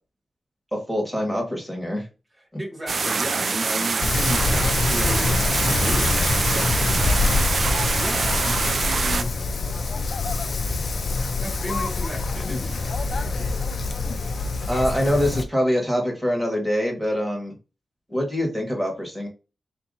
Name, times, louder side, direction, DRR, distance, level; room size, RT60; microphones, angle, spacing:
voice 1, 0.7-2.1 14.7-17.5 18.1-19.3, equal, ahead, 0 dB, 1.3 m, -24 dB
voice 2, 2.6-7.4 8.0-9.4 11.4-13.0, right 1 dB, 20° right, -3 dB, 0.8 m, -34 dB
sound 1, 2.9-9.2, right 4 dB, 50° right, 0.4 m, -25 dB
Wind, 4.0-15.4, left 3 dB, 55° left, 0.5 m, -25 dB
4.1 x 2.5 x 4.0 m, 0.30 s
wide cardioid pair, 175°, 0 cm